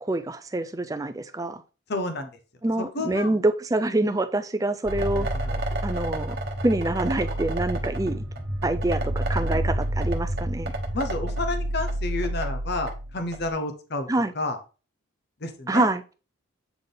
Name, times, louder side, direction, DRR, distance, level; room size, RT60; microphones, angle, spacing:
voice 1, 0.0-1.6 2.6-5.3 5.8-6.4 6.6-8.2 8.6-10.7 14.1-14.3 15.7-16.0, right 2 dB, 15° right, 0.4 m, -26 dB
voice 2, 1.9-2.3 2.8-3.3 5.0-5.6 10.9-14.1 14.3-14.6 15.4-15.9, left 2 dB, 50° left, 0.8 m, -30 dB
sound 1, 4.8-13.5, right 1 dB, 45° right, 1.0 m, -29 dB
8.1 x 3.6 x 3.9 m
head